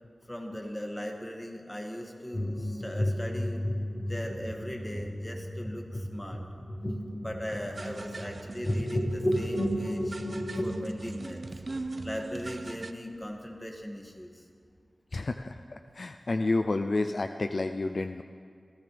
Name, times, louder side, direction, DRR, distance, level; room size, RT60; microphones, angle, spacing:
voice 1, 0.3-3.6 4.0-6.4 7.2-10.1 10.6-11.4 11.7-14.4, equal, 15° left, 1 dB, 2.3 m, -39 dB
sound 1, 2.3-10.9, equal, 35° left, 1.4 m, -32 dB
sound 2, 4.3-12.9, right 2 dB, 55° right, 0.6 m, -42 dB
voice 2, 15.1-18.2, left 2 dB, 60° left, 7 dB, 0.5 m, -30 dB
25.5 x 15.5 x 3.5 m, 2.2 s
wide cardioid pair, 60°, 0 cm